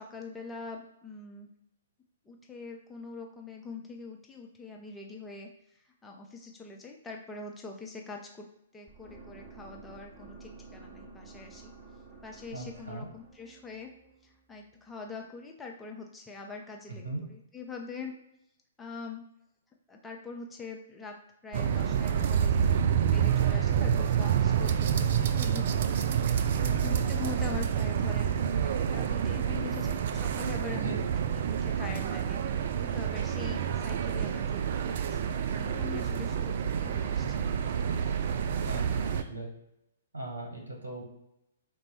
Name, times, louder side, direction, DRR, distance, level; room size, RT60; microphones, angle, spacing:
voice 1, 0.0-1.5 2.3-8.5 8.7-11.7 12.2-13.9 14.2-18.1 18.8-19.2 19.9-31.0 31.3-32.4 32.8-35.2 35.6-37.5, left 4 dB, 10° left, 0 dB, 0.5 m, -43 dB
sound 1, 8.9-14.9, right 4 dB, 20° right, 1.4 m, -52 dB
voice 2, 12.5-13.1 16.9-17.2 26.7-27.0 30.7-31.0 38.6-39.5 40.1-41.0, right 2 dB, 80° right, -1 dB, 1.1 m, -38 dB
sound 2, 21.5-39.2, right 8 dB, 50° right, 0.3 m, -28 dB
3.9 x 2.2 x 4.3 m, 0.80 s
figure-of-eight pair, 120°, 0 cm